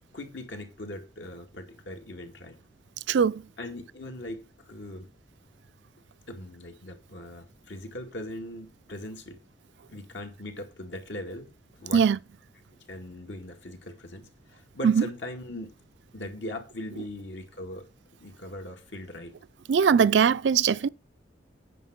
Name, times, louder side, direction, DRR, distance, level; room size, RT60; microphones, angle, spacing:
voice 1, 0.1-2.6 3.6-5.1 6.3-9.4 9.9-11.5 11.8-12.1 12.9-15.7 16.1-17.9 18.2-19.4, left 1 dB, 75° left, 2.2 m, -40 dB
voice 2, 3.1-3.4 11.9-12.2 14.8-15.0 19.7-20.9, right 6 dB, 70° right, 0.4 m, -21 dB
9.2 x 5.9 x 6.0 m
head